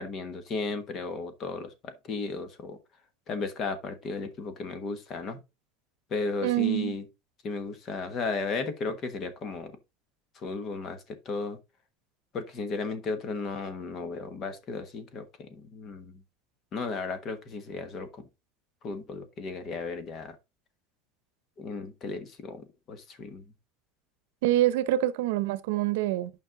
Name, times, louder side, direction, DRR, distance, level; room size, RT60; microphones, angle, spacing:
voice 1, 0.0-2.8 3.3-5.4 6.1-7.0 7.4-9.7 10.3-11.6 12.3-16.2 16.7-18.3 18.8-20.4 21.6-23.4, left 4 dB, 30° left, 1.3 m, -35 dB
voice 2, 6.4-7.0 24.4-26.3, right 14 dB, 85° right, 0.7 m, -26 dB
9.4 x 5.3 x 3.9 m
cardioid pair, 160°, 0 cm